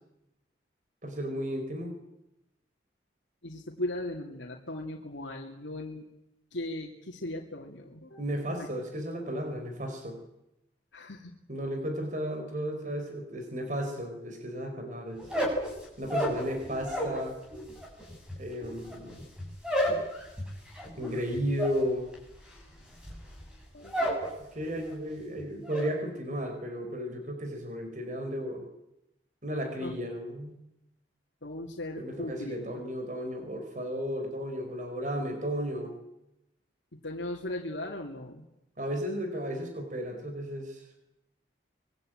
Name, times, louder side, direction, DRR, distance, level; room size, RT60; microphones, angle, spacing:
voice 1, 1.0-2.0 8.2-10.2 11.5-15.3 16.0-17.4 18.4-19.2 21.0-22.2 24.4-28.6 29.4-30.6 32.0-35.9 38.8-40.9, equal, 45° right, 5 dB, 4.4 m, -34 dB
voice 2, 3.4-6.1 6.5-8.2 8.6-8.7 10.9-11.3 23.7-24.0 29.8-29.9 31.4-32.8 36.9-38.4, left 1 dB, 85° left, 0 dB, 2.8 m, -38 dB
sound 1, 15.2-17.2 17.5-24.3 24.6-25.1 25.4-25.9, equal, 5° right, 7.4 m, -32 dB
25.5 x 21.5 x 9.0 m, 0.90 s
head